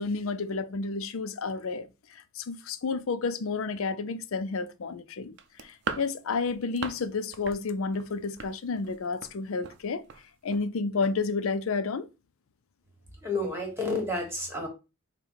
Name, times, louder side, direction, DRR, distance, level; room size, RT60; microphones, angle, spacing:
voice 1, 0.0-10.0 10.4-12.1, left 4 dB, 70° left, 0.5 m, -31 dB
sound 1, 5.4-7.1 7.3-7.6 7.9-9.3 9.6-9.8 10.1-10.2 10.5-10.6, right 5 dB, 55° right, 0.5 m, -38 dB
voice 2, 13.2-14.7, left 2 dB, 10° right, 1.5 m, -30 dB
5.2 x 2.2 x 4.6 m
head